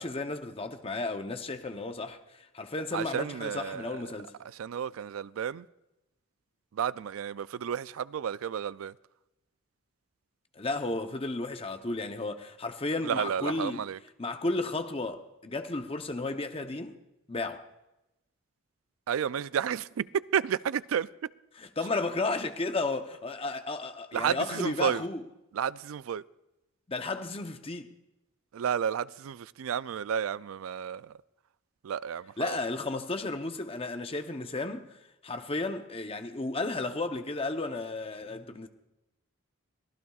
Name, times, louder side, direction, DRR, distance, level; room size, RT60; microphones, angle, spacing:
voice 1, 0.0-4.3 10.6-13.8 14.2-17.0 17.3-17.7 21.6-25.2 26.9-27.9 32.4-35.0 35.2-38.7, left 2 dB, 25° left, 0.8 m, -33 dB
voice 2, 2.9-4.1 4.5-5.7 6.7-8.9 13.0-14.0 19.1-21.3 24.1-25.0 25.5-26.2 28.5-31.1 31.8-32.6, right 8 dB, 80° right, 0.4 m, -32 dB
24.5 x 16.0 x 2.4 m
head